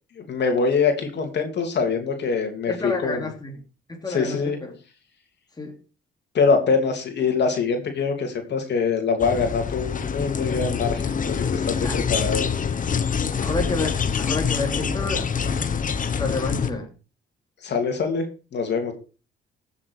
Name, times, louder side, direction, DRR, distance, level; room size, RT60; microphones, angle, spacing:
voice 1, 0.2-3.3 4.1-4.6 6.3-12.5 17.6-18.9, left 5 dB, 60° left, 4 dB, 3.1 m, -24 dB
voice 2, 2.7-3.5 3.9-4.7 5.6-5.8 11.8-12.0 13.4-15.5 16.2-16.9, left 2 dB, 20° left, 2 dB, 3.1 m, -29 dB
sound 1, 9.2-16.7, left 6 dB, 40° left, 1.2 m, -25 dB
15.5 x 7.2 x 4.8 m, 0.35 s
cardioid pair, 90°, 20 cm